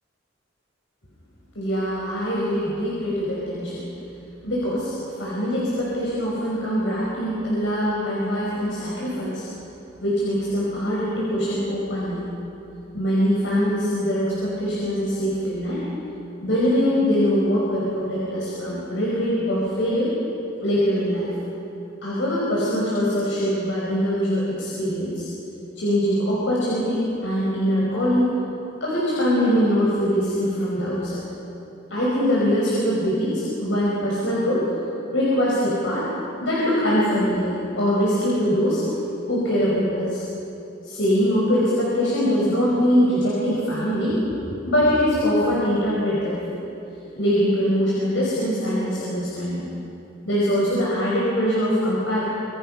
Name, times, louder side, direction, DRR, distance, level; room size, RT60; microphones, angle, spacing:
voice 1, 1.6-3.8 4.4-4.9 5.2-9.5 10.0-12.3 12.9-15.8 16.4-20.1 20.6-21.3 22.0-25.3 25.8-28.3 28.8-31.2 31.9-34.7 35.1-36.1 36.4-38.8 39.3-40.2 40.9-44.4 44.7-46.6 47.2-49.6 50.3-52.2, equal, 80° left, -6 dB, 5.4 m, -22 dB
26.5 x 25.0 x 5.7 m, 2.8 s
head